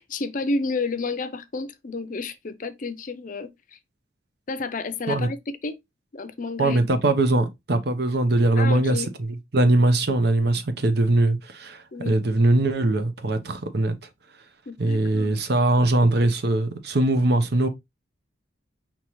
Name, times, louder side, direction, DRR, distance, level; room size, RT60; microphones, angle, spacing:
voice 1, 0.0-3.5 4.5-5.8 6.1-6.9 8.6-9.1 11.9-12.2 14.7-15.3, left 3 dB, 45° left, 0.5 m, -30 dB
voice 2, 6.6-13.9 14.8-17.7, right 2 dB, 60° right, 0.8 m, -21 dB
5.5 x 2.9 x 3.1 m
head